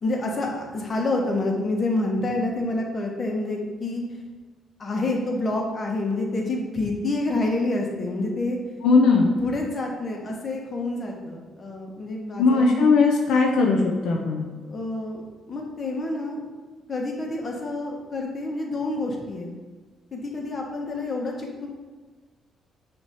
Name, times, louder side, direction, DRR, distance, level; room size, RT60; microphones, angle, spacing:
voice 1, 0.0-4.0 4.8-8.6 9.4-12.7 14.6-15.2 15.5-16.4 16.9-19.5 20.1-21.7, left 2 dB, 40° left, 0 dB, 1.2 m, -28 dB
voice 2, 8.8-9.3 12.4-14.4, left 4 dB, 80° left, 0 dB, 0.7 m, -19 dB
6.4 x 3.0 x 5.5 m, 1.3 s
cardioid pair, 90°, 0 cm